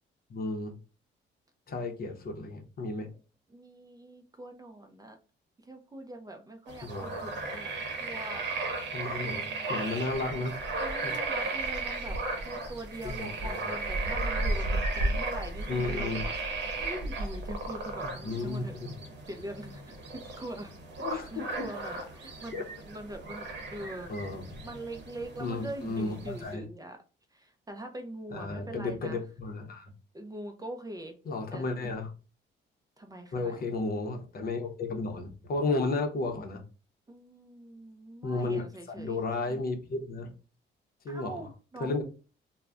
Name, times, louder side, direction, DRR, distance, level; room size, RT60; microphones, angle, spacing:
voice 1, 0.3-0.7 1.7-3.1 6.8-7.2 8.9-10.6 11.0-11.2 13.0-13.7 15.7-16.2 18.2-18.9 21.0-21.7 22.5-22.7 24.1-24.4 25.4-26.6 28.3-29.9 31.3-32.1 33.3-36.6 38.2-38.6 39.0-40.3 41.0-41.4 41.8-42.0, left 3 dB, 50° left, 4 dB, 0.7 m, -33 dB
voice 2, 3.5-5.2 5.6-7.7 8.0-8.5 9.1-9.7 10.8-16.3 16.7-18.8 19.3-20.7 21.1-24.2 24.6-27.0 27.3-29.2 30.1-31.2 31.5-31.7 33.0-33.6 35.7-36.0 37.1-39.3 41.1-42.0, right 1 dB, 20° right, 5 dB, 0.4 m, -43 dB
sound 1, 6.7-26.5, right 2 dB, 65° right, 0.9 m, -35 dB
2.3 x 2.1 x 3.3 m, 0.34 s
cardioid pair, 90°, 20 cm